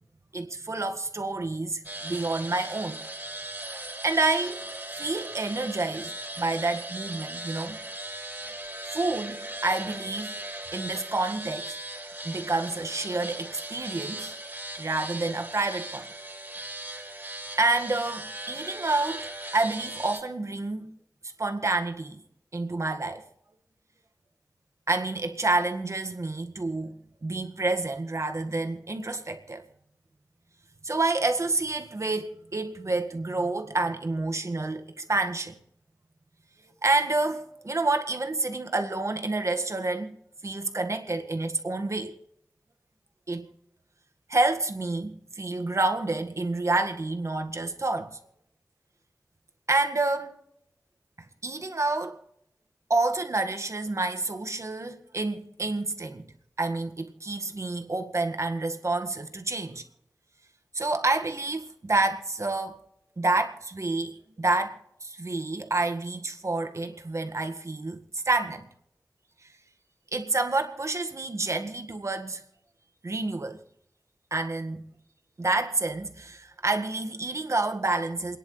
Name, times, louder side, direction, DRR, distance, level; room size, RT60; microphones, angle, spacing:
voice 1, 0.3-3.0 4.0-4.7 5.0-7.8 8.1-8.3 8.9-10.3 10.7-11.8 12.2-14.3 14.8-16.1 17.6-20.9 21.4-22.2 22.5-23.3 24.9-29.6 30.8-35.5 36.8-40.2 40.4-42.2 43.3-43.5 44.3-48.2 49.7-50.4 51.4-52.2 52.9-56.3 56.6-59.8 60.7-62.8 63.2-68.6 70.1-72.4 73.0-73.6 74.3-74.9 75.4-78.4, right 2 dB, 55° right, 1.8 m, -28 dB
sound 1, 1.8-20.2, right 1 dB, 30° right, 4.5 m, -38 dB
28.5 x 10.5 x 3.3 m
wide cardioid pair, 55°, 6 cm